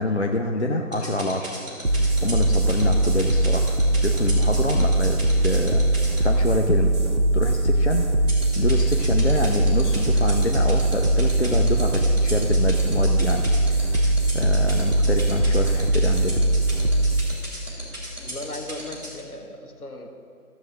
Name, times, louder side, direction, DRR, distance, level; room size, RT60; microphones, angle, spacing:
voice 1, 0.0-1.5 1.9-7.0 7.3-8.1 8.6-14.1 14.3-16.4, left 1 dB, 50° left, 2 dB, 0.6 m, -26 dB
sound 1, 0.9-6.2 8.3-19.2, right 1 dB, 20° right, 2.3 m, -35 dB
sound 2, 1.8-18.9, right 1 dB, 50° right, 0.8 m, -21 dB
voice 2, 18.2-20.1, left 1 dB, 75° left, 3 dB, 1.4 m, -37 dB
14.5 x 7.6 x 3.5 m, 2.5 s
figure-of-eight pair, 170°, 45 cm